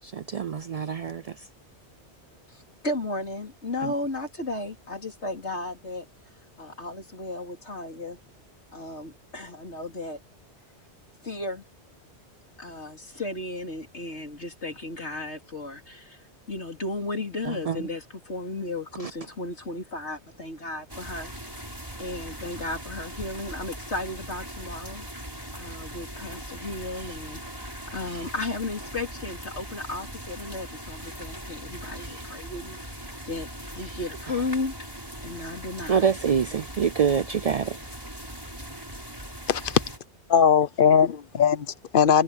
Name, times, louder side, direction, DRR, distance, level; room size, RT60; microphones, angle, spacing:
voice 1, 0.0-1.5 3.8-3.9 17.5-17.8 19.0-19.1 35.9-37.8, right 7 dB, 65° right, 0.3 m, -26 dB
voice 2, 2.5-6.1 6.6-8.2 8.7-10.2 11.2-11.6 12.6-16.2 16.5-25.2 25.6-33.5 33.7-34.9 35.2-36.0, left 2 dB, 75° left, 4.2 m, -34 dB
sound 1, 20.9-40.0, equal, 20° right, 7.6 m, -40 dB
voice 3, 39.5-39.8 40.3-42.2, left 7 dB, 55° left, 0.8 m, -20 dB
omnidirectional pair, 1.2 m